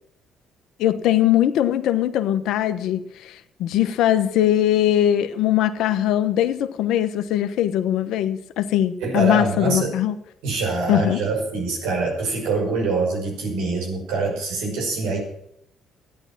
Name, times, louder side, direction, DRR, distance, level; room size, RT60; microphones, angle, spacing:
voice 1, 0.8-10.1 10.9-11.2, left 11 dB, 70° left, 10 dB, 1.2 m, -21 dB
voice 2, 9.0-9.9 10.4-15.2, right 3 dB, 80° right, 0 dB, 5.9 m, -24 dB
14.0 x 10.5 x 7.5 m, 0.77 s
hypercardioid pair, 60°, 0 cm